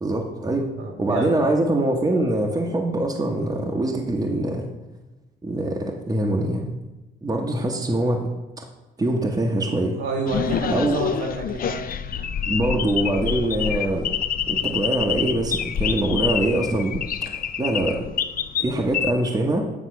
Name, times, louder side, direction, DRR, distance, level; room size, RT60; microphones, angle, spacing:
voice 1, 0.0-0.7 1.0-4.7 5.4-6.7 7.2-8.3 8.6-8.7 9.0-10.0 10.7-10.9 12.5-14.1 14.5-18.0 18.6-19.7, right 1 dB, 20° right, 0 dB, 0.9 m, -23 dB
voice 2, 0.8-1.4 10.0-11.9, right 3 dB, 75° right, 2 dB, 1.6 m, -28 dB
sound 1, 10.3-19.1, left 8 dB, 45° left, 0.4 m, -27 dB
8.2 x 3.6 x 5.8 m, 1.1 s
cardioid pair, 90°, 20 cm